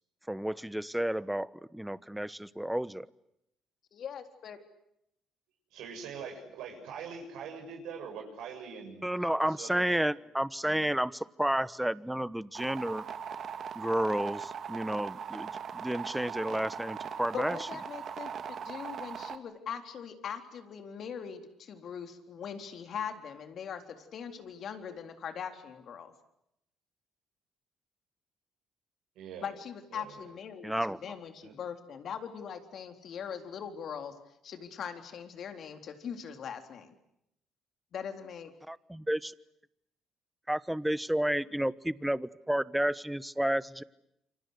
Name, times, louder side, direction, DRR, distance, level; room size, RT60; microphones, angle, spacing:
voice 1, 0.3-3.1 9.0-13.0 13.7-17.6 30.6-31.0 38.7-39.3 40.5-43.8, right 1 dB, 5° right, 17 dB, 1.1 m, -31 dB
voice 2, 3.9-4.6 17.3-26.1 29.4-34.1 34.4-36.9 37.9-38.5, left 7 dB, 60° left, 7 dB, 3.8 m, -41 dB
voice 3, 5.7-9.2 9.5-10.1 29.2-29.5 29.9-30.1 31.4-31.5, right 6 dB, 80° right, 2 dB, 7.2 m, -43 dB
sound 1, 12.5-19.4, right 7 dB, 55° right, 2.2 m, -40 dB
28.5 x 25.5 x 8.1 m, 0.80 s
supercardioid pair, 65°, 0 cm